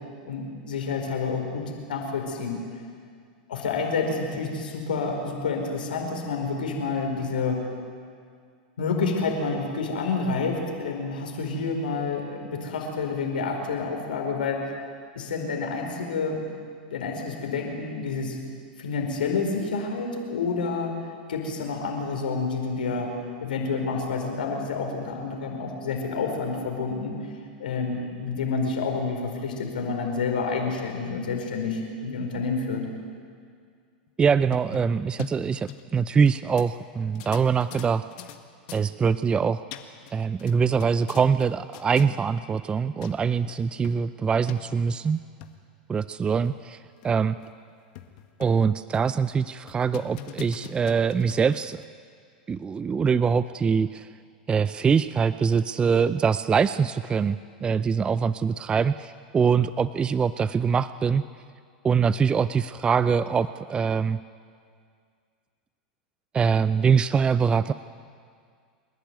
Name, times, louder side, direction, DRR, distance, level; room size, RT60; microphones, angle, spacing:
voice 1, 0.2-2.8 3.5-7.6 8.8-14.6 15.1-16.5 16.9-18.4 18.8-20.9 21.3-23.1 23.4-27.1 27.6-32.8, left 4 dB, 85° left, 2 dB, 4.8 m, -29 dB
sound 1, 34.1-36.3 36.6-36.7 37.2-38.4 38.7-38.9 39.4-40.1 40.4-41.5 41.7-42.1 42.7-42.8 43.0-43.1 43.5-43.6 43.8-43.9 44.5-44.6 45.2-45.5 46.0-46.1 46.5-46.6 47.0-47.1 47.4-47.5 48.0-48.6 48.9-49.2 49.7-51.8, left 11 dB, 60° left, 1.7 m, -41 dB
voice 2, 34.2-38.0 38.7-39.6 40.1-45.2 45.9-46.8 47.0-47.4 48.4-51.8 52.5-54.1 54.5-61.2 61.8-64.2 66.3-67.7, right 6 dB, 20° right, 15 dB, 0.5 m, -23 dB
28.5 x 11.5 x 9.4 m, 2.1 s
hypercardioid pair, 105°, 5 cm